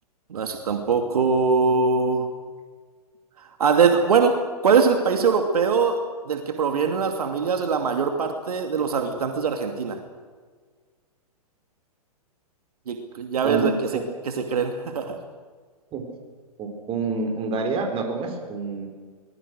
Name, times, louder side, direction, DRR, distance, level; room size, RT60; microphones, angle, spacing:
voice 1, 0.3-2.3 3.4-4.3 4.6-6.0 6.3-10.0 12.9-13.7 14.3-15.2, right 5 dB, 70° right, 5 dB, 2.6 m, -22 dB
voice 2, 13.4-14.0 15.9-16.0 16.6-18.9, right 3 dB, 25° right, 3 dB, 4.9 m, -28 dB
24.5 x 20.5 x 6.5 m, 1.5 s
hypercardioid pair, 115°, 20 cm